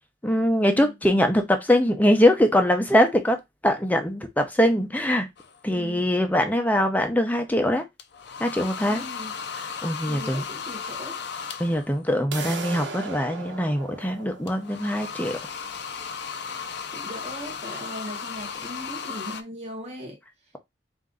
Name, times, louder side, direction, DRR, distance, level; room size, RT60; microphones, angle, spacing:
voice 1, 0.2-3.4 3.6-5.3 5.6-7.8 8.4-9.0 9.8-10.4 11.6-15.4, left 1 dB, 10° left, 0.7 m, -22 dB
sound 1, 5.4-5.6 8.0-12.0 14.5-19.4, left 6 dB, 65° left, 0.5 m, -35 dB
voice 2, 5.7-6.0 8.9-9.4 10.1-11.2 16.9-20.2, equal, 35° right, 1.1 m, -39 dB
sound 2, 12.3-18.3, right 4 dB, 70° right, 1.1 m, -39 dB
4.3 x 2.7 x 3.8 m
head